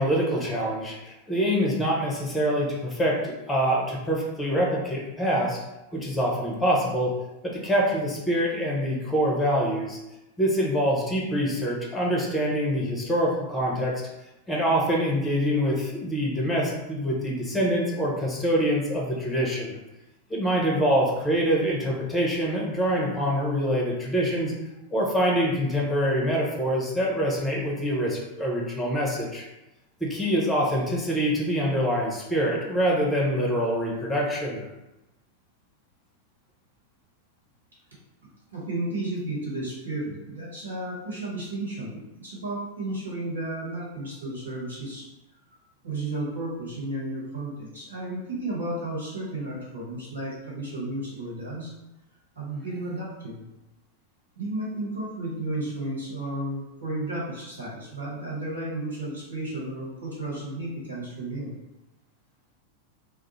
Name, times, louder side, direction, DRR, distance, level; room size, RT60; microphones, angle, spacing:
voice 1, 0.0-5.6 5.9-7.1 7.4-10.0 10.4-13.9 14.5-19.8 20.3-24.5 24.9-29.4 30.0-34.6, equal, 10° left, -3 dB, 0.7 m, -25 dB
voice 2, 38.5-45.0 45.8-51.7 52.3-53.4 54.3-61.6, right 1 dB, 75° right, -7 dB, 1.1 m, -33 dB
2.3 x 2.0 x 3.0 m, 0.97 s
figure-of-eight pair, 90°, 0 cm